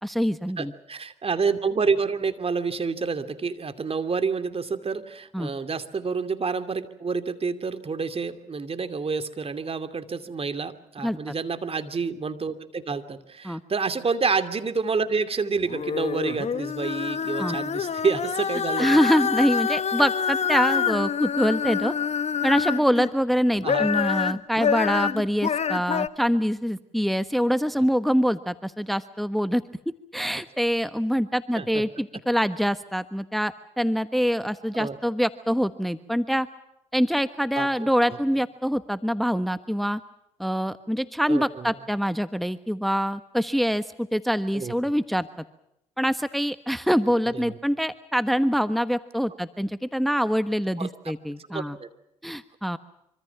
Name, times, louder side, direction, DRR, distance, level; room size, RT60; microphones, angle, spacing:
voice 1, 0.0-0.7 5.3-5.5 11.0-11.3 13.4-13.6 17.4-17.6 18.8-21.9 22.4-29.6 30.1-36.5 36.9-40.0 40.4-45.3 46.0-51.8 52.2-52.8, equal, ahead, 12 dB, 1.2 m, -25 dB
voice 2, 0.6-18.9 23.6-23.9 31.5-31.8 34.8-35.0 37.6-37.9 41.3-41.7 44.5-44.7 47.3-47.5 50.8-50.9 51.5-51.9, right 5 dB, 40° right, 10 dB, 2.7 m, -28 dB
sound 1, 15.6-23.1 23.5-26.1, left 7 dB, 45° left, 1.2 m, -26 dB
25.5 x 25.0 x 6.0 m, 0.83 s
supercardioid pair, 55°, 15 cm